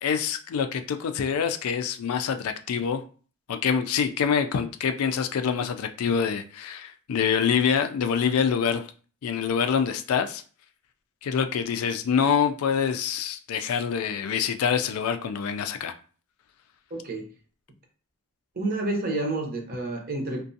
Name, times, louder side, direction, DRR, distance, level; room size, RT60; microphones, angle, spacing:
voice 1, 0.0-3.0 3.5-8.9 9.2-10.4 11.2-15.9, left 7 dB, 75° left, 0.3 m, -25 dB
voice 2, 16.9-17.3 18.6-20.4, right 2 dB, 40° right, 0.6 m, -29 dB
2.5 x 2.2 x 2.6 m
head